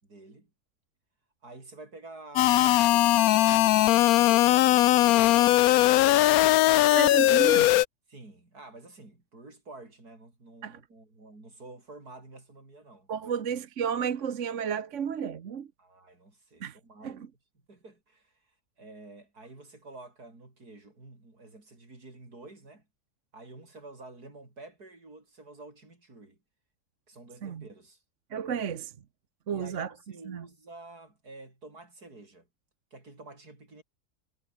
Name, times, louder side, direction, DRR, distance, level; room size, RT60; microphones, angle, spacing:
voice 1, 0.0-0.5 1.4-6.6 8.1-13.5 15.8-17.3 17.7-22.9 23.3-26.4 27.1-28.0 29.5-32.5 32.9-33.8, right 2 dB, 75° right, 6.1 m, -49 dB
sound 1, 2.4-7.9, left 15 dB, 75° left, 1.0 m, -20 dB
voice 2, 6.8-7.7 10.6-10.8 13.1-15.7 16.6-16.8 17.0-17.2 27.4-27.6 28.3-28.9 29.5-29.9 30.3-30.4, right 7 dB, 55° right, 1.3 m, -32 dB
omnidirectional pair, 1.7 m